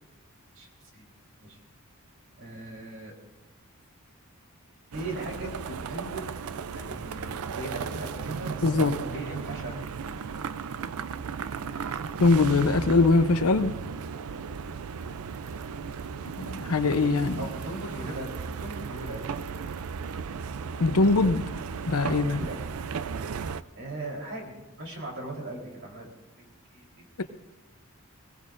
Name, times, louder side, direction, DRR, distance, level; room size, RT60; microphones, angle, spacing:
voice 1, 2.4-3.1 4.9-6.2 6.7-9.7 10.0-10.2 14.3-14.4 17.4-18.3 18.6-19.2 22.1-22.6 23.7-26.1 26.7-27.0, right 2 dB, 60° right, -1 dB, 3.7 m, -39 dB
sound 1, 4.9-23.6, right 6 dB, 80° right, 0.5 m, -35 dB
voice 2, 8.6-8.9 12.2-13.7 16.4-17.4 20.8-21.4 21.9-22.4, left 3 dB, 85° left, 10 dB, 0.8 m, -22 dB
21.5 x 17.0 x 2.6 m, 1.1 s
head